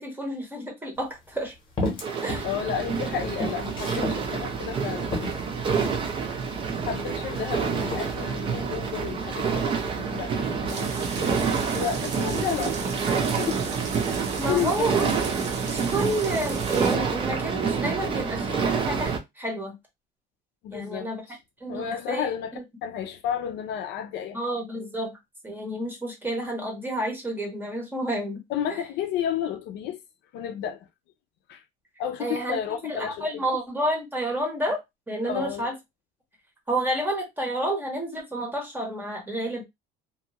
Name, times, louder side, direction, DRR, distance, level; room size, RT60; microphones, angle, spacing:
voice 1, 0.0-1.5 2.2-2.5 14.4-15.1 15.7-19.8 20.7-21.2 21.6-22.6 24.3-25.2 25.4-28.4 32.2-32.6 32.9-35.7 36.7-39.6, right 1 dB, 10° right, 0.8 m, -30 dB
sound 1, 1.0-1.1 1.8-2.5 2.8-4.2 4.7-4.8 5.1-6.0 6.7-7.4 7.8-8.2, left 1 dB, 25° left, 0.9 m, -32 dB
sound 2, 2.0-19.2, right 5 dB, 25° right, 0.4 m, -28 dB
voice 2, 2.4-5.1 6.9-13.0 13.4-13.7 14.1-15.1 20.6-21.1 21.7-24.4 28.5-30.0 30.3-30.9 31.5-31.6 32.0-33.3 35.2-35.7, left 9 dB, 60° left, 0.5 m, -32 dB
sound 3, 10.7-17.0, right 5 dB, 60° right, 0.8 m, -38 dB
2.7 x 2.2 x 2.8 m
cardioid pair, 175°, 20 cm